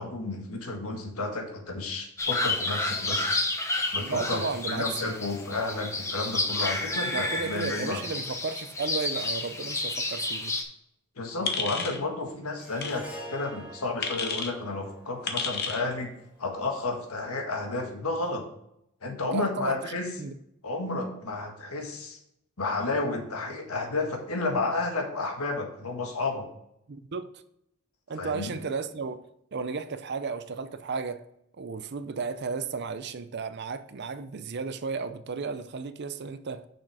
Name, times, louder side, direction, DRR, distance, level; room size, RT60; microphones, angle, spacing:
voice 1, 0.0-3.3 3.9-8.0 11.2-16.1 16.4-18.4 19.0-20.1 20.6-22.2 22.6-26.4 28.2-28.5, left 3 dB, 75° left, 1.7 m, -32 dB
sound 1, 2.2-10.6, left 2 dB, 15° left, 0.8 m, -30 dB
voice 2, 4.0-5.1 7.1-10.6 19.2-20.3 26.9-27.4 28.1-31.3 31.6-36.7, right 4 dB, 50° right, 0.5 m, -34 dB
sound 2, 11.5-12.0 12.8-13.0 14.0-14.5 15.3-15.8, left 5 dB, 45° left, 0.9 m, -31 dB
Harp, 12.6-17.0, right 1 dB, 5° right, 1.5 m, -46 dB
6.4 x 6.2 x 4.9 m
head